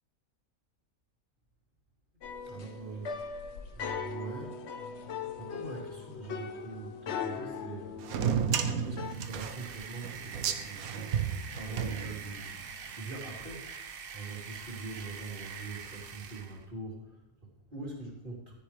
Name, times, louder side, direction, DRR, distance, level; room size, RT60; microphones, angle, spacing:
sound 1, 2.2-9.1, left 6 dB, 55° left, 0.9 m, -40 dB
voice 1, 2.4-3.2 3.7-4.9 5.4-8.0 8.8-18.5, right 3 dB, 35° right, -3 dB, 3.5 m, -43 dB
sound 2, 8.0-12.6, right 7 dB, 75° right, 1.2 m, -32 dB
sound 3, 8.9-16.7, right 6 dB, 50° right, 0.8 m, -45 dB
13.5 x 10.0 x 3.3 m, 0.82 s
omnidirectional pair, 1.6 m